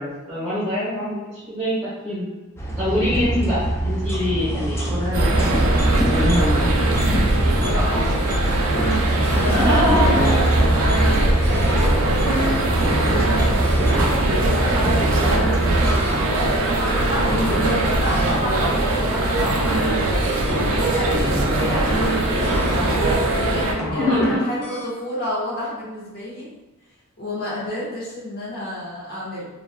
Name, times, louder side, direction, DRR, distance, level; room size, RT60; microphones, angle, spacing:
voice 1, 0.0-2.3 2.8-5.8 6.0-7.1 9.5-10.3 17.2-17.5 21.1-21.6 24.0-24.4, left 1 dB, 5° right, -11 dB, 1.1 m, -24 dB
sound 1, 2.6-16.0, right 1 dB, 10° left, 0.3 m, -24 dB
sound 2, 5.1-23.7, right 1 dB, 75° right, 0.5 m, -21 dB
voice 2, 7.6-8.3 9.3-10.5 11.5-12.3 12.7-13.9 14.3-16.0 16.3-19.8 20.5-22.6 23.3-26.5 27.2-29.5, left 1 dB, 50° left, -7 dB, 1.1 m, -30 dB
sound 3, 8.7-9.0 9.2-10.3 10.6-11.2 11.4-12.5 12.8-13.4 13.6-14.5 15.0-15.6 15.8-16.6 17.2-17.7 18.0-18.8 19.4-19.9 20.2-21.0 21.6-22.1 22.4-23.5 23.8-24.3 24.6-24.8, equal, 75° left, 0.7 m, -28 dB
3.1 x 2.5 x 2.2 m, 1.1 s
head